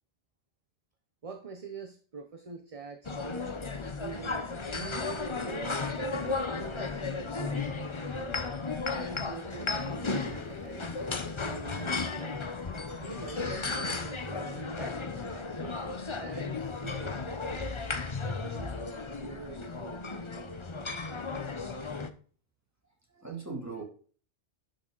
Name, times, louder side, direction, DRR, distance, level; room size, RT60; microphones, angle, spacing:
voice 1, 1.2-3.5 4.0-8.2 8.9-10.9 11.3-12.5 13.0-15.8 16.2-17.7 18.2-18.8 19.2-20.2, right 4 dB, 35° right, 7 dB, 0.8 m, -44 dB
sound 1, 3.0-22.1, left 4 dB, 30° left, 0.8 m, -35 dB
sound 2, 9.7-15.6, left 3 dB, 85° left, 1.9 m, -52 dB
voice 2, 23.1-23.8, right 4 dB, 15° right, 0 dB, 2.8 m, -39 dB
11.0 x 6.5 x 3.9 m, 0.42 s
omnidirectional pair, 1.1 m